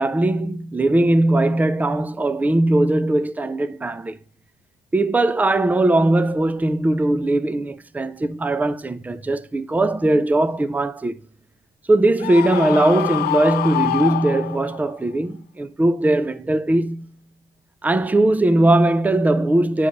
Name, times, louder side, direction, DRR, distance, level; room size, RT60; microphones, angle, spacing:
voice 1, 0.0-4.2 4.9-11.1 11.9-17.1 17.8-19.9, right 2 dB, 10° right, 0.5 m, -19 dB
Screaming, 12.2-14.9, left 14 dB, 70° left, 0.5 m, -25 dB
10.0 x 4.9 x 5.2 m
cardioid pair, 110°, 17 cm